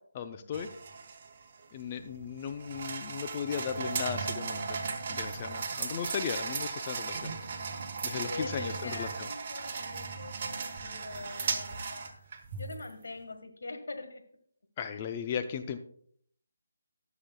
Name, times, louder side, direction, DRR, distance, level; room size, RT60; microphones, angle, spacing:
voice 1, 0.1-0.7 1.7-4.8 5.1-7.4 8.0-9.3 14.8-15.8, left 7 dB, 30° left, 8 dB, 0.5 m, -36 dB
sound 1, 0.5-12.9, right 5 dB, 40° right, 1.2 m, -37 dB
voice 2, 8.0-12.2 12.6-14.2, left 3 dB, 70° left, 6 dB, 1.5 m, -43 dB
18.5 x 6.9 x 2.2 m, 0.64 s
figure-of-eight pair, 155°, 0 cm